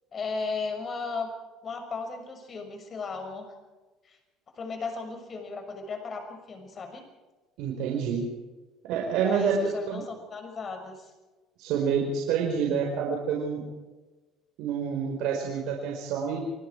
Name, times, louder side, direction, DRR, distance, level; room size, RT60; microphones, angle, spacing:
voice 1, 0.1-1.3 1.6-3.5 4.0-4.2 4.6-7.0 9.2-11.1, left 4 dB, 35° left, 5 dB, 6.3 m, -35 dB
voice 2, 7.6-8.3 8.8-10.0 11.6-13.6 14.6-16.4, right 6 dB, 75° right, 0 dB, 4.8 m, -28 dB
29.0 x 20.5 x 4.8 m, 1.2 s
cardioid pair, 120°, 0 cm